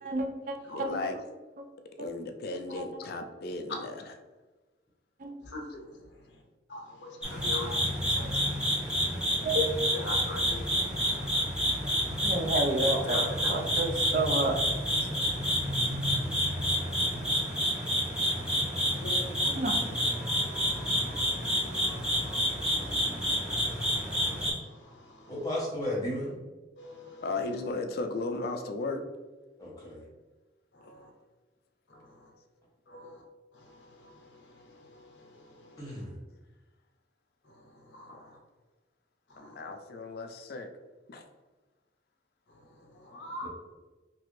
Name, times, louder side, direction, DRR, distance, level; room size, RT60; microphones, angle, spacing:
voice 1, 0.0-1.0 2.7-2.8 5.2-5.4 9.4-9.7 12.2-14.6 19.4-19.8, right 1 dB, 45° right, 0.4 m, -30 dB
voice 2, 0.7-1.2 2.0-4.1 15.0-15.1 27.2-29.0 38.1-38.2 39.4-40.7 41.1-41.2, left 3 dB, 55° left, 0.3 m, -35 dB
voice 3, 6.7-7.8 9.9-10.6 13.1-13.3 19.0-19.2 20.2-23.8 26.8-27.5 30.8-31.0 32.9-33.2 37.9-38.2 39.6-39.7 43.1-43.5, left 2 dB, 75° left, 0.7 m, -42 dB
sound 1, 7.2-24.5, equal, 5° right, 0.8 m, -29 dB
voice 4, 25.3-26.3 29.6-30.0 35.8-36.1 43.4-43.5, left 1 dB, 20° left, 0.9 m, -34 dB
2.9 x 2.5 x 3.1 m
head